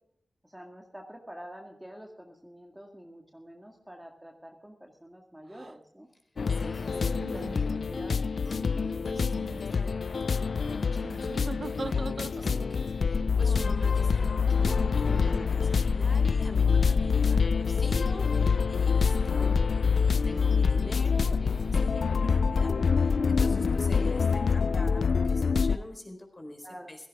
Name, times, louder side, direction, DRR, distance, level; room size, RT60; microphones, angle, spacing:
voice 1, 0.4-6.1 6.9-7.6 7.9-8.3 19.4-19.5 26.6-27.0, equal, 5° right, 1 dB, 1.8 m, -47 dB
sound 1, 5.5-5.7 7.0-7.9 9.0-9.6 11.0-12.7 13.4-13.9 15.1-15.5, right 3 dB, 40° right, 0.8 m, -41 dB
sound 2, 6.4-25.8, left 5 dB, 70° left, 0.4 m, -26 dB
voice 2, 6.5-7.8 8.4-27.1, left 1 dB, 25° left, 5 dB, 4.0 m, -45 dB
16.5 x 15.5 x 3.6 m, 0.72 s
wide cardioid pair, 115°, 0 cm